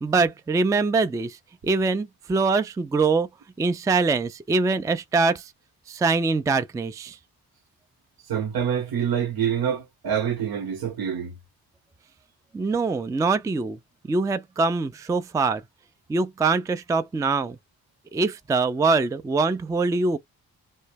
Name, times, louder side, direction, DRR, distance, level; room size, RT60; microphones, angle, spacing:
voice 1, 0.0-1.4 1.6-3.3 3.6-5.5 5.9-7.2 12.5-13.8 14.1-15.6 16.1-17.6 18.1-20.2, right 4 dB, 10° right, 0.3 m, -23 dB
voice 2, 8.3-11.4, right 8 dB, 70° right, 0.9 m, -26 dB
2.1 x 2.0 x 3.3 m
supercardioid pair, 40°, 38 cm